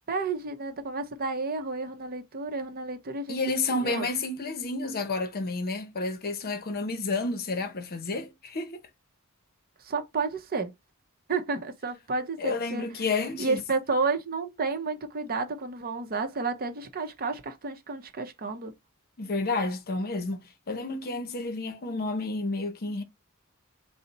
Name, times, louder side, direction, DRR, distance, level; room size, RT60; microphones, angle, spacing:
voice 1, 0.1-3.4 3.8-4.1 9.8-10.7 11.3-12.9 13.4-18.7, right 4 dB, 45° right, 0.7 m, -31 dB
voice 2, 3.3-8.8 12.4-13.6 19.2-23.0, left 3 dB, 45° left, 0.7 m, -30 dB
4.1 x 2.1 x 3.9 m
head